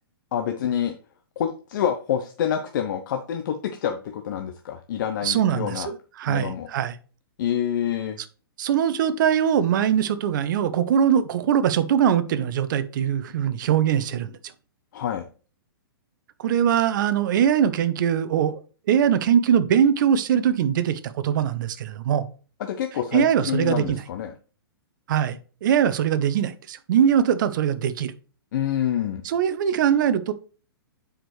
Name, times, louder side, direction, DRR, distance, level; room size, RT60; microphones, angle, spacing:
voice 1, 0.3-1.0 1.4-5.9 6.3-6.7 7.4-8.2 14.9-15.2 22.6-24.3 28.5-29.2, left 9 dB, 55° left, 0.8 m, -27 dB
voice 2, 5.2-6.9 8.6-14.4 16.4-18.6 18.9-22.3 23.1-24.0 25.1-28.1 29.2-30.3, right 9 dB, 55° right, 0.8 m, -22 dB
8.7 x 5.0 x 3.2 m
hypercardioid pair, 120°, 12 cm